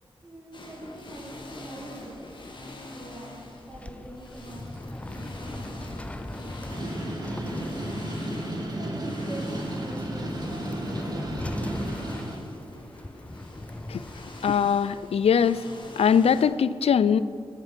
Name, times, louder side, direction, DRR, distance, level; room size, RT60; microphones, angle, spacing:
voice 1, 0.2-2.2 2.9-6.9 7.2-8.0 8.6-11.8, right 1 dB, 20° right, -8 dB, 2.9 m, -44 dB
sound 1, 0.5-16.4, left 1 dB, 50° left, 1.6 m, -44 dB
sound 2, 3.6-15.3, left 1 dB, 10° left, 0.4 m, -40 dB
sound 3, 6.7-12.4, right 1 dB, 40° right, 1.7 m, -33 dB
voice 2, 14.4-15.6 16.0-17.2, left 7 dB, 75° left, 15 dB, 0.4 m, -21 dB
13.5 x 7.4 x 5.1 m, 2.3 s
wide cardioid pair, 85°, 10 cm